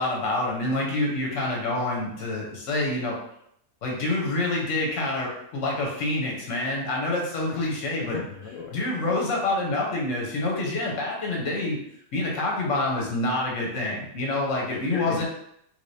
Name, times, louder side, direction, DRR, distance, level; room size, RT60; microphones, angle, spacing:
voice 1, 0.0-3.2 3.8-8.2 8.7-11.8 12.1-15.2, left 2 dB, 60° left, -2 dB, 1.2 m, -27 dB
voice 2, 7.5-8.8 9.3-9.5 14.7-15.2, left 5 dB, 90° left, -1 dB, 1.1 m, -35 dB
3.4 x 3.2 x 2.7 m, 0.73 s
omnidirectional pair, 1.5 m